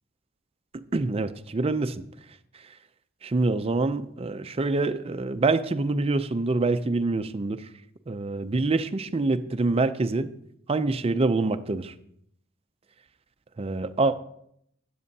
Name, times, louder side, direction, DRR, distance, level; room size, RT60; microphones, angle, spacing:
voice 1, 0.9-1.9 3.2-7.6 8.1-10.3 10.7-11.9 13.6-14.2, right 3 dB, 30° right, 10 dB, 0.4 m, -25 dB
12.5 x 8.6 x 2.8 m, 0.72 s
head